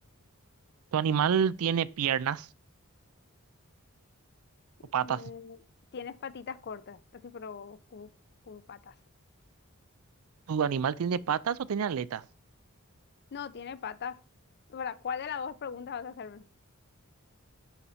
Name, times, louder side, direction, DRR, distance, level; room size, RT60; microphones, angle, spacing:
voice 1, 0.9-2.5 4.9-5.2 10.5-12.2, right 7 dB, 70° right, 0.4 m, -28 dB
voice 2, 4.8-5.6 5.9-8.1 8.4-8.9 13.3-14.2 14.7-16.4, left 6 dB, 50° left, 0.5 m, -39 dB
10.0 x 4.1 x 4.3 m
head